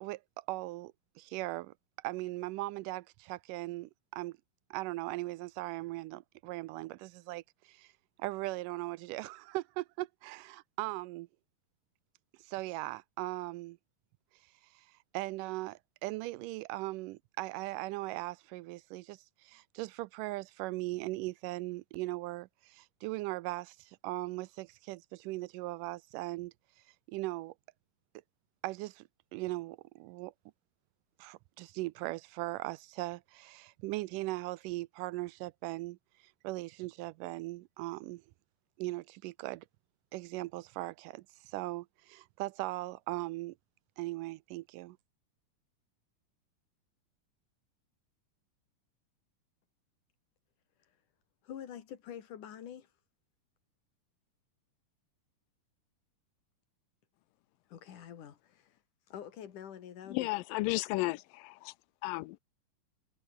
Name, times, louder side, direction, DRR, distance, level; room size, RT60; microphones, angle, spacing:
voice 1, 0.0-4.4 4.7-7.9 8.2-11.3 12.4-13.8 14.8-14.9 15.1-26.5 27.1-27.5 28.6-30.3 31.2-36.0 36.4-38.2 38.8-39.6 40.1-43.6 44.0-45.0, right 19 dB, 85° right, 2.1 m, -39 dB
voice 2, 51.4-53.0 57.7-60.3, left 9 dB, 70° left, 3.5 m, -47 dB
voice 3, 60.1-61.7 62.0-62.4, left 21 dB, 90° left, 2.3 m, -33 dB
omnidirectional pair, 3.9 m